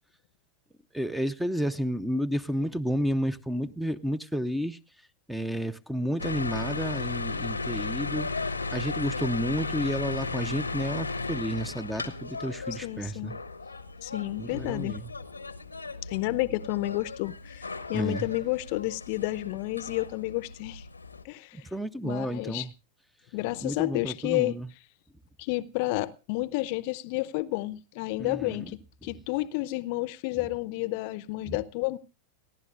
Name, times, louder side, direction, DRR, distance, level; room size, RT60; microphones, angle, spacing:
voice 1, 0.9-4.8 5.3-8.3 8.7-13.3 14.4-15.0 17.9-18.2 21.7-22.7 23.6-24.7 28.2-28.6, equal, 5° right, 0.6 m, -31 dB
sound 1, 6.2-21.2, left 3 dB, 80° left, 0.9 m, -35 dB
voice 2, 12.7-13.4 14.0-15.0 16.1-20.8 21.2-21.7 22.0-22.7 23.3-24.6 25.4-32.0, left 19 dB, 45° left, 0.7 m, -31 dB
30.0 x 11.0 x 2.4 m
figure-of-eight pair, 90°, 0 cm